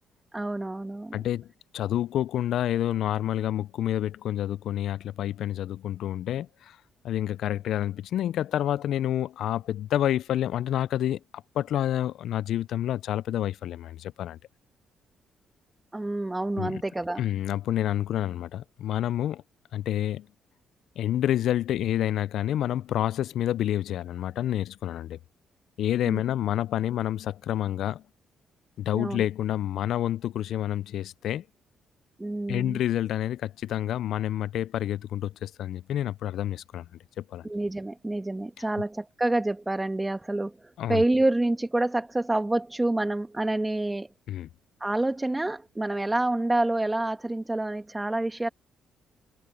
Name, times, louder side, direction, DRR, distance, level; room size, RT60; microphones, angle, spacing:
voice 1, 0.3-1.2 15.9-17.2 26.1-26.2 28.9-29.2 32.2-32.8 37.4-40.5 40.9-44.1 44.8-48.5, right 2 dB, 15° right, 1.4 m, -27 dB
voice 2, 1.1-1.5 1.7-6.8 7.0-11.2 11.5-14.4 16.6-16.8 17.2-19.4 19.7-20.3 21.0-25.2 25.8-28.0 28.8-31.4 32.5-36.9 37.2-37.5 40.8-41.0 44.3-44.5, left 12 dB, 75° left, 0.3 m, -28 dB
cardioid pair, 90°, 0 cm